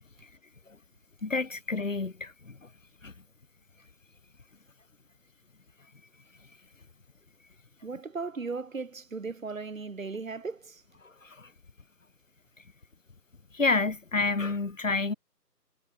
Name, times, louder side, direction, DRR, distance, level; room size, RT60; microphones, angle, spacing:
voice 1, 1.2-2.5 3.0-3.1 13.5-15.1, left 3 dB, 50° left, 0.9 m, -28 dB
voice 2, 7.8-10.8, right 4 dB, 55° right, 0.7 m, -37 dB
figure-of-eight pair, 165°, 50 cm